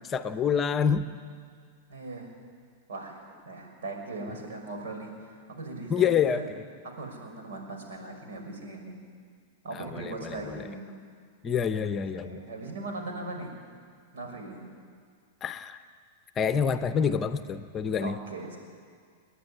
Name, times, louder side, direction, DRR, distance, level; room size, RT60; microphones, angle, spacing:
voice 1, 0.1-1.1 5.9-6.4 9.7-10.6 11.4-12.4 15.4-15.8 16.4-18.2, left 7 dB, 25° left, 11 dB, 0.9 m, -27 dB
voice 2, 1.9-2.3 2.9-6.5 6.8-9.0 9.6-10.8 11.7-13.5 14.1-14.6 18.0-18.6, right 2 dB, 80° right, 2 dB, 5.8 m, -39 dB
29.5 x 10.0 x 10.0 m, 2.1 s
hypercardioid pair, 125°, 0 cm